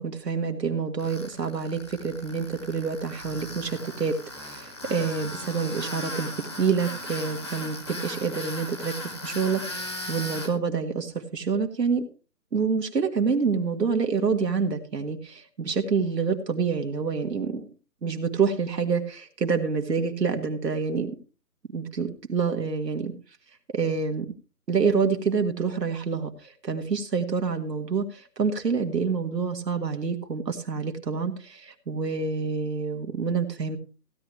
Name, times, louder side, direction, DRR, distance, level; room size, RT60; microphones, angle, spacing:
voice 1, 0.0-6.3 6.6-12.0 12.5-17.7 18.0-21.1 21.7-23.1 23.7-24.3 24.7-33.8, right 5 dB, 75° right, 5 dB, 2.0 m, -27 dB
Tools, 1.0-10.5, left 1 dB, 15° left, 1.2 m, -38 dB
15.5 x 10.5 x 3.1 m, 0.33 s
hypercardioid pair, 170°, 49 cm